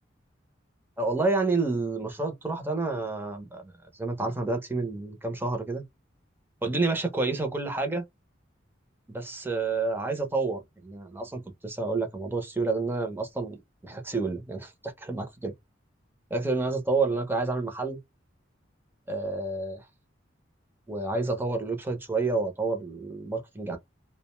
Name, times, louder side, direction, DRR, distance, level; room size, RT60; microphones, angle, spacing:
voice 1, 1.0-3.7 4.0-5.8 6.6-8.0 9.1-13.6 13.8-15.5 16.3-18.0 19.1-19.8 20.9-23.8, right 3 dB, 10° right, 0.6 m, -29 dB
2.5 x 2.1 x 3.0 m
head